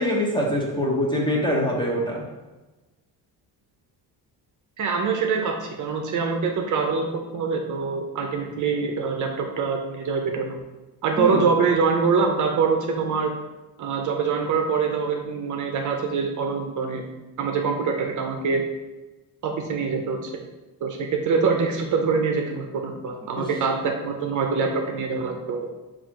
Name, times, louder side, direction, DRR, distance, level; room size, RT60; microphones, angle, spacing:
voice 1, 0.0-2.2 11.2-11.5 23.4-23.5, equal, 10° left, -2 dB, 0.8 m, -24 dB
voice 2, 4.8-10.6 11.0-13.3 13.8-17.0 17.4-18.7 19.4-20.4 20.8-25.6, right 5 dB, 50° right, 3 dB, 0.6 m, -24 dB
4.2 x 2.5 x 4.5 m, 1.1 s
cardioid pair, 135°, 39 cm